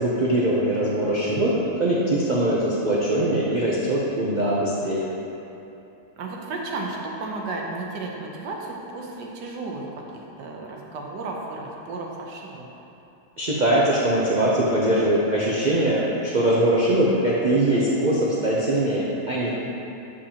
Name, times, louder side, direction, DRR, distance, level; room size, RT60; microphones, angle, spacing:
voice 1, 0.0-5.1 13.4-19.5, right 1 dB, 65° right, -6 dB, 0.4 m, -22 dB
voice 2, 6.2-10.0 10.4-12.6, right 3 dB, 90° right, -1 dB, 1.5 m, -33 dB
8.4 x 5.2 x 2.8 m, 2.8 s
omnidirectional pair, 1.8 m